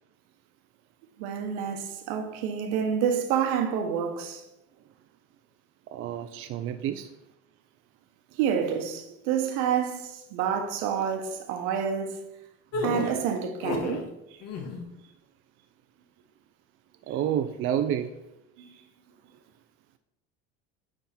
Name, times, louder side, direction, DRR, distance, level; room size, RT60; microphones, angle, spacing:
voice 1, 1.2-4.4 8.4-12.2 12.8-14.1 18.6-18.7, right 8 dB, 75° right, 1.1 m, -28 dB
voice 2, 5.9-7.1 17.1-18.1, right 10 dB, 40° right, 0.5 m, -29 dB
sound 1, 12.7-14.0 14.4-14.9, left 4 dB, 50° left, 1.3 m, -32 dB
9.8 x 3.7 x 4.3 m
cardioid pair, 125°, 32 cm